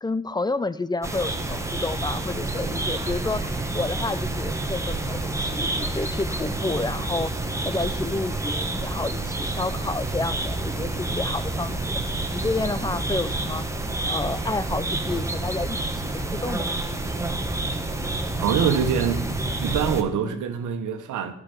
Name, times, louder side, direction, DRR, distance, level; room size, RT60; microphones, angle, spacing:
voice 1, 0.0-7.3 7.6-12.0 12.3-13.6 14.1-16.8 20.1-20.4, left 3 dB, 15° left, 0.5 m, -30 dB
sound 1, 1.0-20.0, right 2 dB, 10° right, 1.3 m, -28 dB
voice 2, 18.4-19.3 19.6-21.3, right 8 dB, 80° right, 1.4 m, -24 dB
11.5 x 6.1 x 7.0 m
cardioid pair, 90°, 30 cm